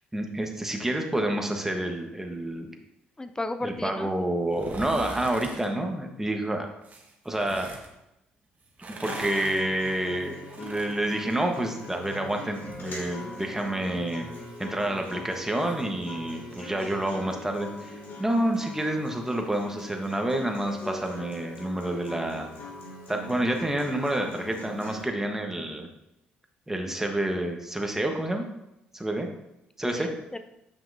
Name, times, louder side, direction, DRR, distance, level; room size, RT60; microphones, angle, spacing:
voice 1, 0.1-2.7 3.6-6.7 7.2-7.7 8.9-14.2 14.6-22.5 23.1-25.9 26.7-28.4 28.9-29.3 29.8-30.1, right 1 dB, 10° right, 3 dB, 1.3 m, -28 dB
voice 2, 3.2-4.1 23.2-23.5 24.2-24.3 30.0-30.4, left 2 dB, 15° left, 9 dB, 0.5 m, -35 dB
sound 1, 4.5-5.7 6.8-7.9 8.6-12.1 12.4-15.8 16.2-16.3, right 2 dB, 40° right, 1.4 m, -42 dB
Acoustic guitar, 9.0-25.0, left 2 dB, 60° left, 2.5 m, -41 dB
7.3 x 5.8 x 2.7 m, 0.87 s
hypercardioid pair, 55°, 4 cm